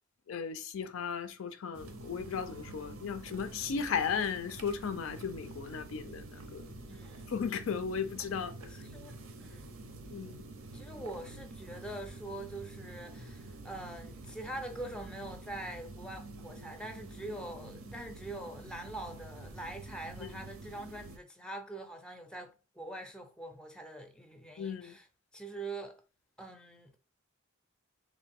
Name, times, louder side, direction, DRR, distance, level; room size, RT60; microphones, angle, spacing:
voice 1, 0.3-6.7 7.3-8.5 10.1-10.4 20.2-20.3 24.6-25.0, left 6 dB, 65° left, 0.4 m, -36 dB
sound 1, 1.7-21.2, right 2 dB, 75° right, 0.6 m, -48 dB
voice 2, 6.9-7.3 8.9-9.7 10.7-25.1 25.3-26.0 26.4-27.0, right 1 dB, 5° left, 0.4 m, -44 dB
3.2 x 2.6 x 3.4 m
head